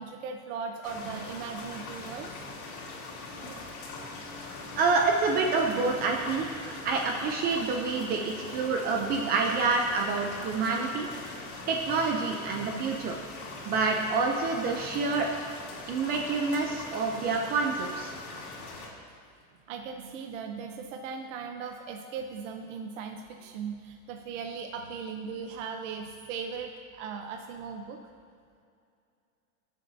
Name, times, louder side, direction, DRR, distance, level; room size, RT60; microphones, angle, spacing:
voice 1, 0.0-2.6 3.4-3.7 7.8-7.9 10.0-10.1 19.7-28.0, right 6 dB, 55° right, 4 dB, 0.8 m, -38 dB
sound 1, 0.8-18.9, left 3 dB, 80° left, 2.6 m, -42 dB
voice 2, 4.8-11.1 11.7-13.2 13.6-15.3 15.9-18.1, right 4 dB, 20° right, 2 dB, 0.5 m, -27 dB
19.0 x 7.2 x 2.7 m, 2.4 s
supercardioid pair, 150°, 43 cm